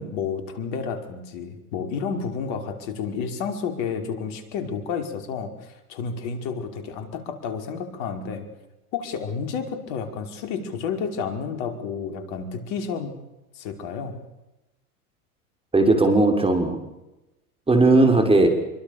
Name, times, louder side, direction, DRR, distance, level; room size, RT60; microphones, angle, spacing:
voice 1, 0.0-8.5 8.9-13.2 13.5-14.2, left 6 dB, 55° left, 7 dB, 5.4 m, -31 dB
voice 2, 15.7-16.8 17.7-18.5, right 2 dB, 10° right, 5 dB, 6.2 m, -17 dB
27.0 x 24.0 x 7.1 m, 0.98 s
hypercardioid pair, 95°, 45 cm